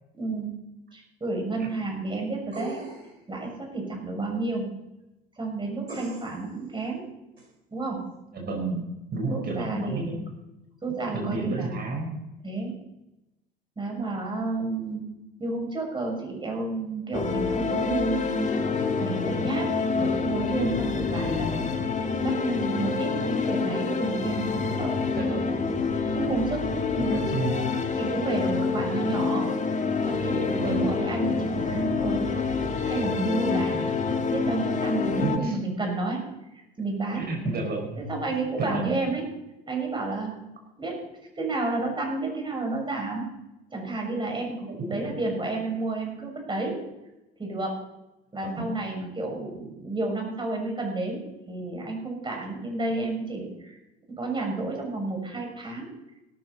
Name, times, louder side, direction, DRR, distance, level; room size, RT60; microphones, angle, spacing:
voice 1, 0.1-0.5 0.9-2.8 3.3-4.7 5.4-7.0 7.7-8.0 9.3-10.2 10.8-11.8 12.4-12.8 13.8-15.1 15.4-18.6 19.0-19.7 20.0-21.7 22.2-25.0 26.0-26.7 26.9-27.3 27.9-29.5 30.0-32.3 32.9-33.9 34.3-36.3 36.8-37.3 38.0-39.2 39.7-40.5 40.8-41.0 41.4-43.3 43.7-46.8 47.4-47.8 48.3-53.8 54.1-55.9, right 3 dB, 15° right, 1 dB, 6.7 m, -31 dB
sound 1, 2.5-3.2 5.9-6.5 7.4-7.5, right 1 dB, 85° right, 5.1 m, -39 dB
voice 2, 8.3-8.8 9.1-10.3 11.1-12.1 25.1-25.6 26.9-27.6 30.6-30.8 35.2-35.6 37.1-38.0 38.6-38.9 44.7-45.0 48.6-48.7, right 3 dB, 30° right, 1 dB, 5.0 m, -31 dB
sound 2, 17.1-35.4, left 4 dB, 25° left, 1.8 m, -27 dB
18.0 x 13.0 x 4.2 m, 0.94 s
figure-of-eight pair, 70°, 30 cm